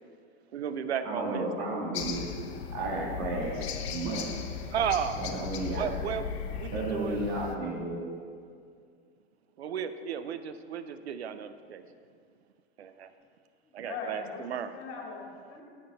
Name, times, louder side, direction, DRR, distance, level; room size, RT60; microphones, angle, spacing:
voice 1, 0.5-1.7 4.7-5.2 5.8-7.3 9.6-11.8 12.8-13.1 13.7-14.7, right 8 dB, 85° right, 11 dB, 0.6 m, -34 dB
voice 2, 1.0-2.3 2.7-3.6 3.9-4.3 5.2-5.9 6.7-8.0, right 2 dB, 55° right, -3 dB, 2.2 m, -33 dB
sound 1, 1.9-7.6, left 7 dB, 75° left, 0.9 m, -37 dB
voice 3, 13.6-15.6, left 5 dB, 40° left, -1 dB, 2.0 m, -41 dB
10.0 x 7.6 x 4.1 m, 2.3 s
hypercardioid pair, 100°, 31 cm